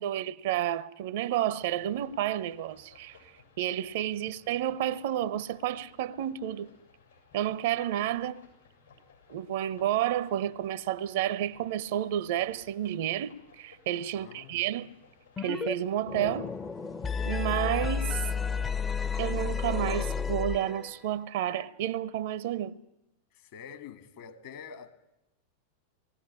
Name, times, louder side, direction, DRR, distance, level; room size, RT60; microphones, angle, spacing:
voice 1, 0.0-3.2 3.6-6.7 7.3-8.4 9.3-14.9 15.4-16.5 17.3-18.2 19.2-22.7, right 11 dB, 55° right, 0.7 m, -30 dB
sound 1, 1.6-21.2, left 4 dB, 80° left, 7.2 m, -59 dB
voice 2, 14.2-14.6 23.3-24.9, left 7 dB, 50° left, 1.9 m, -46 dB
sound 2, 15.4-15.7 16.0-21.0, left 6 dB, 20° left, 0.7 m, -32 dB
20.0 x 16.0 x 10.0 m
figure-of-eight pair, 90°, 0 cm